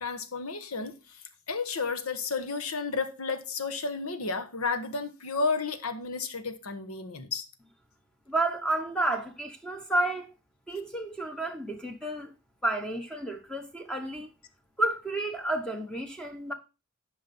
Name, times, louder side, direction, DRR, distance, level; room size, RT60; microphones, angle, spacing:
voice 1, 0.0-0.9 1.5-7.5, left 4 dB, 85° left, 1.3 m, -32 dB
voice 2, 8.3-10.3 10.7-12.3 12.6-14.3 14.8-16.5, right 2 dB, 5° left, 0.9 m, -31 dB
11.5 x 5.4 x 4.2 m
head